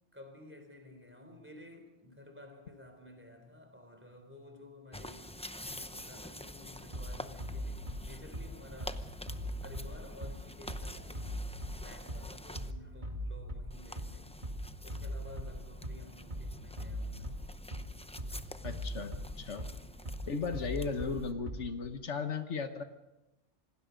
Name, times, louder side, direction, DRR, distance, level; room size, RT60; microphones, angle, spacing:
voice 1, 0.1-9.0 9.6-11.3 11.8-14.4 14.8-17.4, left 1 dB, 10° right, 5 dB, 3.7 m, -53 dB
sound 1, 4.9-12.7 13.7-21.3, left 1 dB, 5° left, 0.6 m, -48 dB
Bass drum, 6.9-21.9, equal, 40° right, 2.4 m, -40 dB
voice 2, 18.6-19.1 19.4-19.7 20.3-22.8, left 5 dB, 75° left, 8 dB, 1.5 m, -36 dB
26.5 x 19.0 x 5.2 m, 0.99 s
omnidirectional pair, 1.2 m